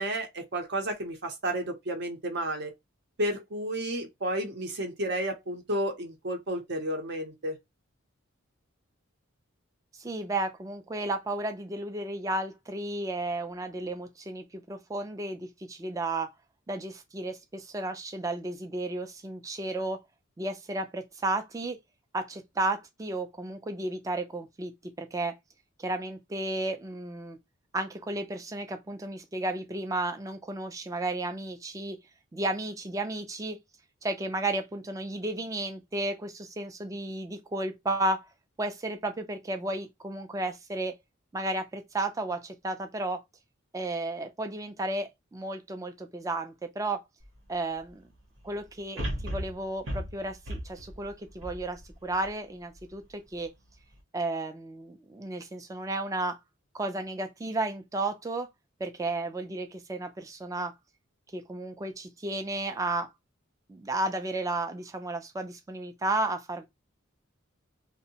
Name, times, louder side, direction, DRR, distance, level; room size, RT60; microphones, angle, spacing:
voice 1, 0.0-2.7 3.2-7.6, right 1 dB, 55° right, 0.6 m, -32 dB
voice 2, 10.0-16.3 16.7-20.0 20.4-21.8 22.1-24.7 25.0-25.3 25.8-27.4 27.7-32.0 32.3-33.6 34.0-38.3 38.6-40.9 41.3-43.2 43.7-47.0 47.5-48.0 48.4-53.5 54.1-56.4 56.7-58.5 58.8-60.7 61.3-63.1 63.7-66.7, right 2 dB, 15° right, 0.3 m, -33 dB
sound 1, 47.2-47.3 49.0-52.3 52.8-52.9, equal, 80° right, 0.9 m, -36 dB
2.6 x 2.0 x 2.7 m
head